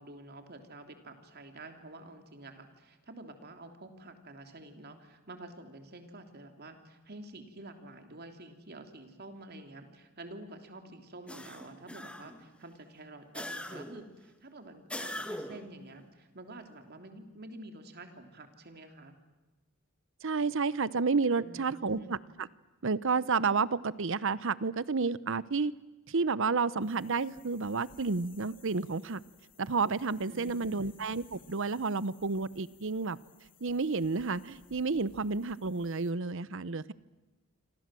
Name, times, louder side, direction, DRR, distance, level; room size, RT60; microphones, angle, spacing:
voice 1, 0.0-19.2 21.4-22.2 30.3-30.9, right 2 dB, 50° right, 6 dB, 3.2 m, -49 dB
sound 1, 11.3-12.5 13.3-14.1 14.9-15.7, left 1 dB, 5° left, 1.6 m, -41 dB
voice 2, 20.2-22.5 22.8-25.7 26.1-29.2 29.6-33.2 33.6-36.9, right 4 dB, 65° right, 18 dB, 0.8 m, -31 dB
sound 2, 26.8-36.1, left 4 dB, 40° left, 2.4 m, -59 dB
28.0 x 26.0 x 7.7 m, 1.1 s
head